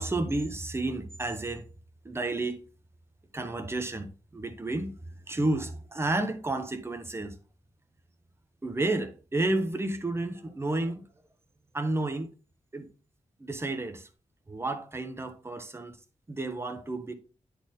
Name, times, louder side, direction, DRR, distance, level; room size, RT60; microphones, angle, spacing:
voice 1, 0.0-1.6 2.0-2.6 3.3-5.0 5.3-7.4 8.6-11.1 11.7-12.3 12.7-12.9 13.4-14.1 14.5-16.0 16.3-17.1, right 2 dB, 20° right, 1.0 m, -31 dB
9.9 x 4.3 x 3.7 m
wide cardioid pair, 130°, 13 cm